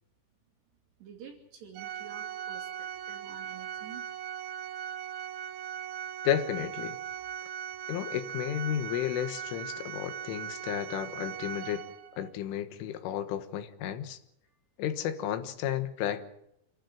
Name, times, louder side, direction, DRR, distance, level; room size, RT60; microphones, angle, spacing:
voice 1, 1.0-4.1 14.5-14.6, right 8 dB, 60° right, 2 dB, 4.5 m, -49 dB
Organ, 1.7-12.3, right 8 dB, 75° right, 2.4 m, -39 dB
voice 2, 6.3-7.0 7.9-11.9 12.2-14.2 14.8-16.3, left 10 dB, 75° left, 10 dB, 3.8 m, -32 dB
28.0 x 12.5 x 9.1 m, 0.80 s
omnidirectional pair, 5.8 m